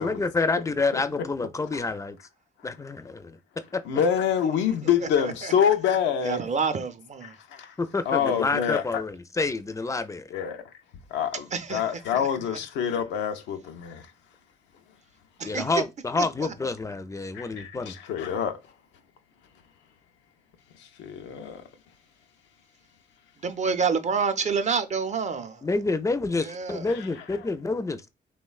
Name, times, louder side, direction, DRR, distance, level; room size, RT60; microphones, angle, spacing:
voice 1, 0.0-2.2 2.6-3.4 3.7-3.8 7.8-10.3 15.4-18.0 25.6-28.1, left 3 dB, 15° left, 0.4 m, -28 dB
voice 2, 0.9-1.3 1.7-1.8 3.9-6.5 7.2-7.7 8.1-9.0 10.3-10.6 11.1-14.0 17.3-18.6 21.0-21.6, left 8 dB, 90° left, 0.4 m, -26 dB
voice 3, 6.3-7.3 11.5-11.8 15.4-15.6 16.2-16.3 23.4-25.6 26.4-26.8, right 5 dB, 40° right, 0.5 m, -27 dB
3.0 x 2.1 x 2.3 m
supercardioid pair, 60°, 18 cm